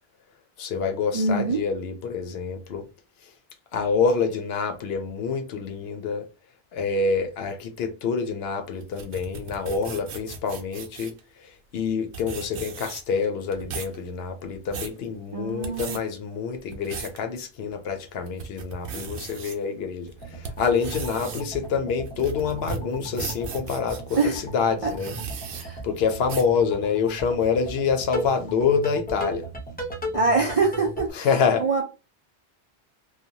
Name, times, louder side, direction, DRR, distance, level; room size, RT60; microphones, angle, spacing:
voice 1, 0.6-2.9 3.2-3.3 3.7-6.3 6.7-25.1 25.8-29.5 31.1-31.6, left 5 dB, 70° left, 0.8 m, -27 dB
voice 2, 1.1-1.6 15.3-16.0 24.2-24.4 24.8-24.9 25.6-25.8 30.1-31.3 31.6-31.8, right 3 dB, 55° right, 0.4 m, -24 dB
sound 1, 8.8-11.2 11.9-12.0 12.1-13.2 13.5-14.0 14.4-15.0 15.5-16.0 16.5-17.2 17.7-17.8 18.3-19.6 20.1-24.3 24.8-25.6 26.3-26.6, right 5 dB, 80° right, 0.9 m, -36 dB
sound 2, 20.2-31.1, equal, 10° left, 0.5 m, -37 dB
2.7 x 2.2 x 2.7 m
omnidirectional pair, 1.1 m